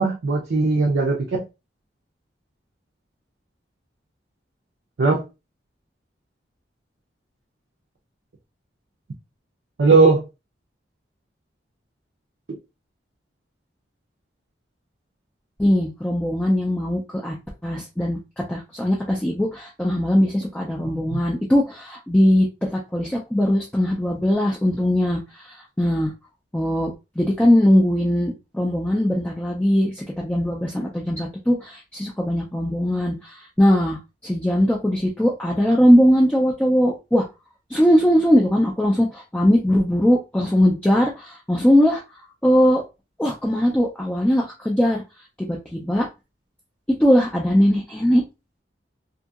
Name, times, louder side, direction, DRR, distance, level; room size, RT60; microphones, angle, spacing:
voice 1, 0.0-1.4 5.0-5.2 9.8-10.3 12.5-12.6 21.1-21.2, right 3 dB, 75° right, 0.5 m, -18 dB
voice 2, 15.6-17.3 17.6-18.2 18.5-26.1 26.5-37.2 37.7-42.0 42.4-42.8 43.2-45.0 45.4-46.1 47.0-48.2, equal, 5° left, 0.3 m, -20 dB
2.7 x 2.7 x 2.3 m
head